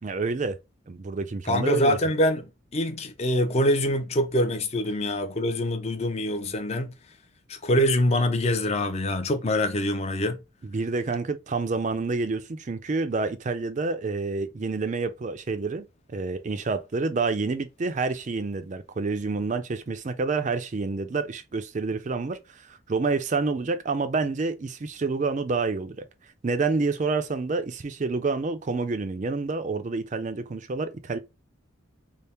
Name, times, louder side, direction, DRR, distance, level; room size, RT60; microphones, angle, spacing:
voice 1, 0.0-0.6 0.9-2.0 10.6-15.9 16.1-26.1 26.4-31.2, right 4 dB, 35° right, 0.4 m, -28 dB
voice 2, 1.5-6.9 7.5-10.4, left 1 dB, 30° left, 0.5 m, -24 dB
3.4 x 2.0 x 4.2 m
head